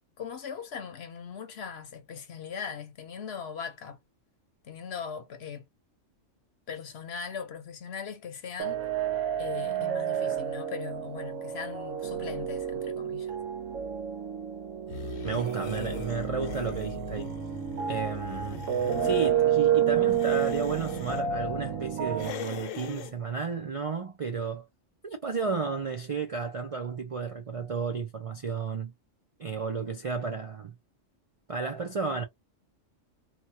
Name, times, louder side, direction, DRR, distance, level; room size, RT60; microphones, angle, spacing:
voice 1, 0.2-4.0 4.6-5.7 6.7-8.8 9.4-13.4, left 6 dB, 60° left, 0.9 m, -39 dB
sound 1, 8.6-22.3, right 9 dB, 85° right, 1.1 m, -30 dB
sound 2, 14.9-19.3 20.0-21.2 22.1-23.1, left 9 dB, 85° left, 1.0 m, -42 dB
voice 2, 15.2-17.4 17.9-18.7 19.0-24.7 25.0-28.9 29.4-30.7 31.5-32.2, right 5 dB, 50° right, 0.4 m, -33 dB
3.0 x 2.3 x 2.7 m
omnidirectional pair, 1.3 m